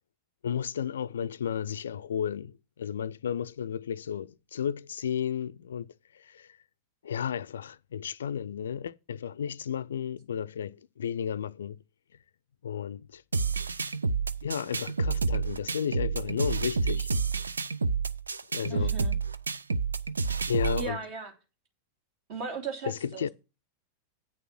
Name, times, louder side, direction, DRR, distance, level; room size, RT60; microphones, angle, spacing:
voice 1, 0.4-5.9 6.1-6.5 7.0-11.8 12.6-13.2 14.4-17.1 18.5-18.9 20.5-21.0 22.8-23.3, left 8 dB, 65° left, 0.4 m, -33 dB
sound 1, 13.3-20.9, right 4 dB, 75° right, 0.5 m, -29 dB
voice 2, 18.7-19.1 20.8-21.3 22.3-23.3, right 5 dB, 50° right, 2.8 m, -36 dB
8.9 x 6.4 x 6.0 m
figure-of-eight pair, 90°, 0 cm